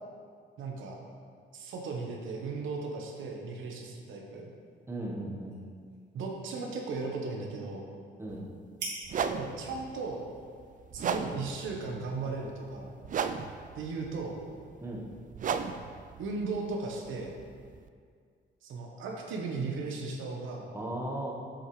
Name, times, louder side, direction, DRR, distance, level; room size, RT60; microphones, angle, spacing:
voice 1, 0.6-1.0 1.5-4.5 6.1-7.9 9.3-10.3 10.9-12.9 13.7-14.4 16.2-17.4 18.6-20.7, right 3 dB, 80° right, 0 dB, 1.1 m, -36 dB
sound 1, 4.5-12.2, right 3 dB, 60° right, 2.0 m, -49 dB
voice 2, 4.9-5.6 8.2-8.5 14.8-15.0 20.7-21.3, right 1 dB, 10° right, -2 dB, 1.2 m, -36 dB
sound 2, 8.3-8.4 9.0-17.9, right 6 dB, 40° right, 0.4 m, -37 dB
7.9 x 6.3 x 3.2 m, 2.1 s
cardioid pair, 90°, 20 cm